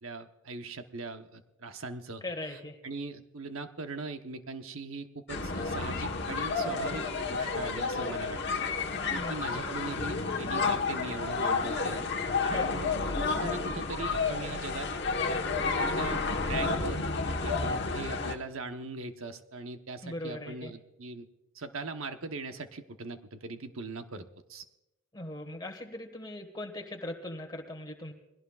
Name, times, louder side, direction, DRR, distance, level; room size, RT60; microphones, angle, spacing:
voice 1, 0.0-2.2 2.5-8.4 9.0-12.0 12.4-12.9 13.3-14.9 15.5-17.1 17.4-21.3 21.5-24.6, right 3 dB, 70° right, 7 dB, 1.0 m, -40 dB
voice 2, 2.2-2.8 9.0-9.6 12.3-12.7 17.5-17.8 20.0-20.7 25.1-28.1, left 1 dB, 20° left, 3 dB, 1.6 m, -40 dB
sound 1, 5.3-18.3, left 4 dB, 50° left, 1.3 m, -31 dB
21.0 x 17.0 x 2.4 m, 0.94 s
head